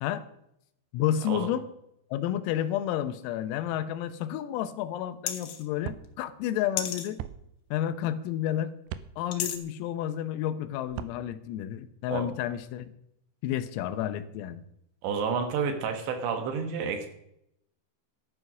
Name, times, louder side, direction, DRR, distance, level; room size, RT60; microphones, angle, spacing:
voice 1, 0.9-1.7 2.1-7.2 7.7-8.7 9.2-12.9 13.4-14.6, left 11 dB, 85° left, 12 dB, 3.6 m, -31 dB
sound 1, 5.3-5.7 6.8-7.1 9.3-9.6, left 10 dB, 70° left, 3.1 m, -32 dB
sound 2, 5.8-6.1 7.2-7.4 8.9-9.1 10.9-11.2, right 11 dB, 85° right, 2.5 m, -37 dB
voice 2, 15.0-17.1, right 6 dB, 70° right, 7 dB, 3.2 m, -30 dB
13.5 x 11.5 x 6.1 m, 0.78 s
omnidirectional pair, 5.9 m